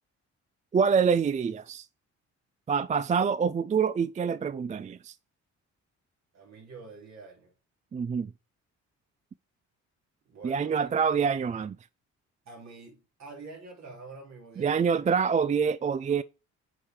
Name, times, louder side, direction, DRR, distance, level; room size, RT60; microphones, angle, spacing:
voice 1, 0.7-1.9 2.7-5.1 7.9-8.3 10.4-11.8 14.6-16.2, right 6 dB, 25° right, 0.4 m, -26 dB
voice 2, 6.3-7.5 10.3-11.0 12.5-15.0, right 3 dB, 60° right, 3.9 m, -47 dB
8.9 x 4.9 x 4.7 m
cardioid pair, 90°, 30 cm